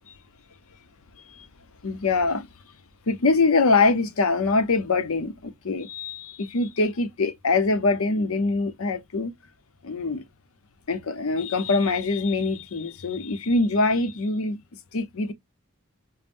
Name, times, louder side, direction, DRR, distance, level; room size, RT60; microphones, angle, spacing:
voice 1, 1.8-2.5 3.1-9.3 9.8-10.2 10.9-14.6 14.9-15.3, left 3 dB, 80° left, 0.7 m, -24 dB
5.2 x 2.0 x 2.5 m
head